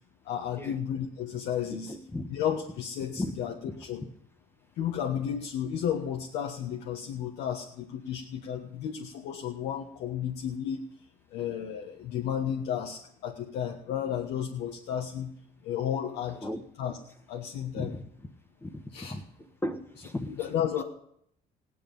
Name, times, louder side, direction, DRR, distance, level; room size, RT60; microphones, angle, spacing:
voice 1, 0.2-1.9 2.3-3.5 3.8-4.0 4.7-10.8 11.3-15.3 15.6-16.4 16.8-17.0 17.3-17.9 18.9-19.2 20.4-20.8, left 9 dB, 85° left, 1 dB, 1.3 m, -33 dB
voice 2, 1.7-2.3 3.2-3.3 3.7-3.8 16.4-16.6 17.8-18.0 18.6-18.8 19.1-19.3 19.6-20.5, left 1 dB, 15° left, 4 dB, 1.3 m, -35 dB
17.0 x 10.0 x 5.4 m, 0.69 s
cardioid pair, 110°, 17 cm